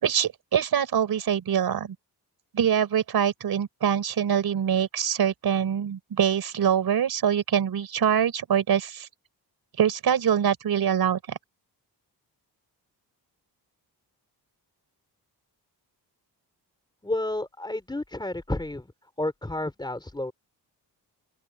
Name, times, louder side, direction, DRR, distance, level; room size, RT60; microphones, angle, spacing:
voice 1, 0.0-2.0 2.5-9.1 9.8-11.4, right 8 dB, 60° right, 4.1 m, -24 dB
voice 2, 17.0-18.9 19.2-20.3, left 1 dB, 10° left, 3.4 m, -31 dB
open air
wide cardioid pair, 170°, 41 cm